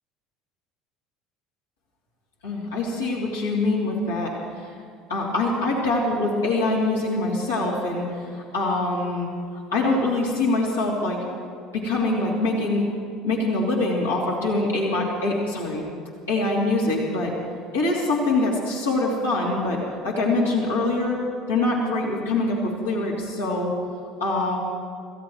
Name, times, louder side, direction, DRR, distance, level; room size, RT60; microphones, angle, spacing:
voice 1, 2.4-4.7 5.1-9.3 9.7-11.2 11.7-12.8 13.2-15.8 16.3-17.3 17.7-21.2 21.5-23.8 24.2-24.6, left 2 dB, 80° left, -5 dB, 3.0 m, -24 dB
27.5 x 16.0 x 3.2 m, 2.4 s
figure-of-eight pair, 65°, 0 cm